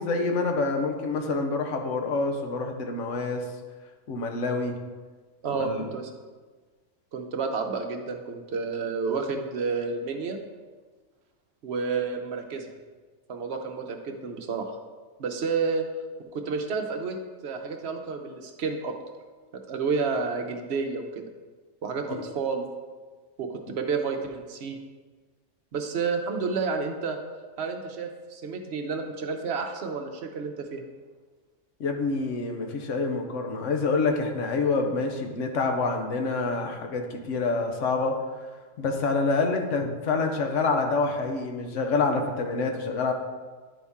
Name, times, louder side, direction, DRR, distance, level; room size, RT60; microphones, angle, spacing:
voice 1, 0.0-3.4 4.1-4.7 5.5-5.9 22.1-22.2 31.8-38.1 38.8-43.1, left 3 dB, 75° left, 3 dB, 1.1 m, -27 dB
voice 2, 5.4-6.1 7.1-10.4 11.6-12.7 13.3-14.8 15.2-15.8 16.3-17.2 17.4-18.9 19.7-21.3 21.8-22.7 23.4-24.8 25.7-27.2 27.6-30.8, right 5 dB, 60° right, 5 dB, 0.9 m, -30 dB
10.0 x 4.1 x 3.5 m, 1.4 s
omnidirectional pair, 1.3 m